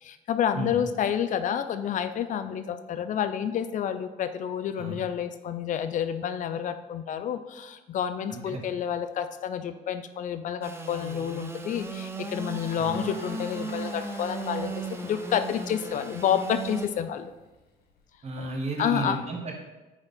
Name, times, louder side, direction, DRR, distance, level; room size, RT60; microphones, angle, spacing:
voice 1, 0.0-17.3 18.4-18.5 18.8-19.2, left 8 dB, 50° left, 11 dB, 0.5 m, -29 dB
voice 2, 8.3-8.6 12.8-13.0 18.2-19.5, right 3 dB, 40° right, 1 dB, 1.4 m, -33 dB
Engine / Sawing, 10.6-16.9, right 3 dB, 15° right, 0.5 m, -36 dB
Engine, 11.9-18.2, left 3 dB, 65° left, 1.1 m, -48 dB
8.1 x 3.9 x 3.5 m, 1.1 s
cardioid pair, 110°, 17 cm